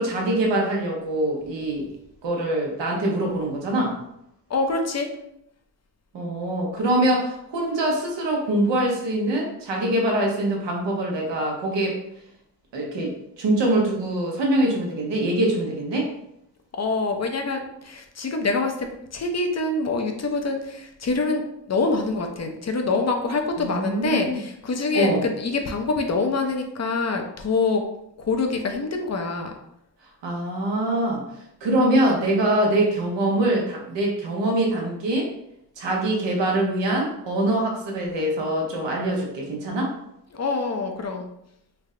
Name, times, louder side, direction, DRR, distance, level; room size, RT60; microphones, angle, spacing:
voice 1, 0.0-1.9 2.2-4.0 6.1-12.0 12.7-16.1 23.6-24.4 24.9-25.2 30.2-31.2 31.6-35.3 35.8-39.9, right 1 dB, 90° right, -1 dB, 1.0 m, -24 dB
voice 2, 4.5-5.1 16.7-27.8 28.2-29.5 40.3-41.3, left 3 dB, 40° left, 4 dB, 0.6 m, -25 dB
3.4 x 2.1 x 3.7 m, 0.78 s
cardioid pair, 70°, 42 cm